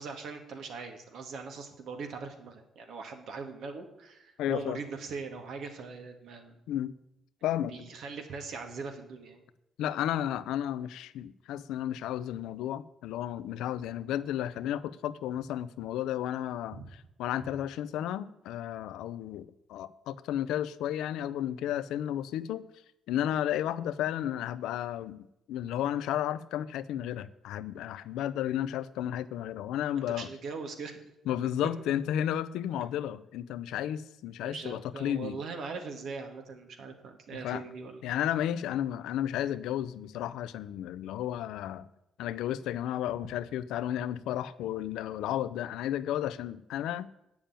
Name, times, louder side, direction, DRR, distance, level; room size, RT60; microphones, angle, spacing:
voice 1, 0.0-6.6 7.7-9.4 16.7-16.9 17.4-17.5 29.9-31.1 34.4-38.0, right 4 dB, 70° right, 5 dB, 2.1 m, -41 dB
voice 2, 4.4-4.8 6.7-6.9 7.4-7.7 9.8-16.8 17.2-22.6 23.1-30.3 31.3-35.4 37.4-37.6 38.0-41.9 42.2-47.1, left 11 dB, 90° left, 15 dB, 0.5 m, -33 dB
8.9 x 7.1 x 8.9 m, 0.84 s
cardioid pair, 90°, 0 cm